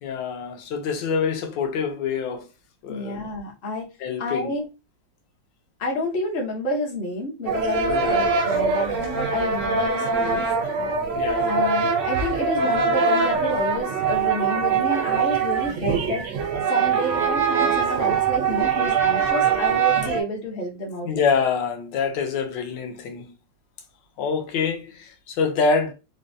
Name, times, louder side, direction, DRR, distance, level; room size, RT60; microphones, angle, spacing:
voice 1, 0.0-2.5 2.8-3.2 4.0-4.5 7.9-8.3 11.1-11.6 21.0-23.3 24.2-25.9, left 5 dB, 75° left, 1.4 m, -26 dB
voice 2, 2.9-3.9 4.2-4.7 5.8-10.5 11.5-16.3 16.7-21.2, left 1 dB, 50° left, 0.6 m, -29 dB
sound 1, 7.5-20.2, right 5 dB, 85° right, 0.6 m, -23 dB
4.3 x 2.2 x 2.6 m
omnidirectional pair, 2.0 m